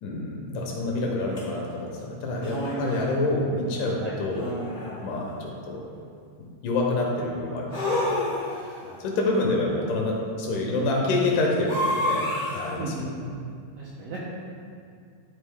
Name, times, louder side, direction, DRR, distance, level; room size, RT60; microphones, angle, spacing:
voice 1, 0.0-4.6 5.0-5.8 6.6-8.2 8.5-8.7 9.0-12.9, left 2 dB, 75° left, -1 dB, 2.4 m, -27 dB
sound 1, 1.4-1.5 2.4-3.1 4.3-5.1 7.7-8.8 11.7-12.7, left 1 dB, 55° left, 0.5 m, -28 dB
voice 2, 12.8-13.1 13.8-14.2, right 2 dB, 75° right, -6 dB, 1.4 m, -35 dB
11.0 x 4.0 x 3.6 m, 2.3 s
omnidirectional pair, 3.9 m